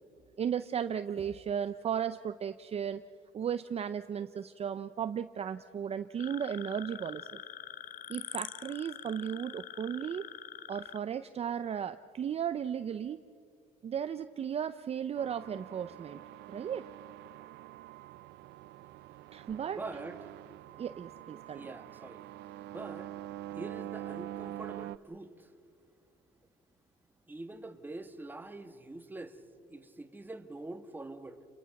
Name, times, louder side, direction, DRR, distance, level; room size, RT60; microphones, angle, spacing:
voice 1, 0.4-3.0 3.3-7.3 8.1-10.3 10.7-13.2 13.8-16.2 16.5-16.9 19.3-19.8 20.8-21.7, right 8 dB, 40° right, 11 dB, 0.6 m, -35 dB
sound 1, 6.2-11.0, left 11 dB, 55° left, 0.6 m, -44 dB
sound 2, 15.2-25.0, right 17 dB, 85° right, 0.5 m, -45 dB
voice 2, 19.7-20.3 21.5-22.3 22.7-23.1 23.5-25.5 27.3-29.4 29.7-31.4, right 2 dB, 10° right, 7 dB, 1.5 m, -44 dB
29.0 x 22.5 x 5.9 m, 2.2 s
cardioid pair, 110°, 17 cm